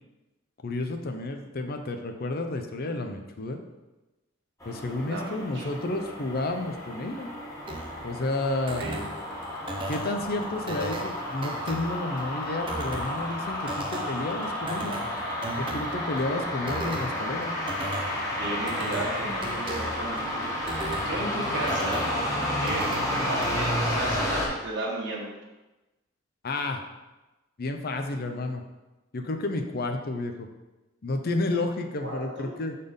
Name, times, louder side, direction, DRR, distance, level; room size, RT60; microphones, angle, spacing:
voice 1, 0.6-3.6 4.6-7.4 8.0-8.8 9.9-15.0 15.6-17.5 26.4-26.8 27.6-28.6 29.1-30.5 31.0-32.8, left 2 dB, 50° left, 5 dB, 0.6 m, -31 dB
sound 1, 4.6-24.5, left 1 dB, 15° left, 1.4 m, -31 dB
voice 2, 5.1-6.0 8.8-9.0 18.4-22.0 22.6-25.3 32.0-32.5, right 2 dB, 65° right, -2 dB, 1.5 m, -35 dB
sound 2, 7.7-23.7, right 1 dB, 25° right, 0.6 m, -38 dB
5.4 x 4.2 x 5.1 m, 1.1 s
head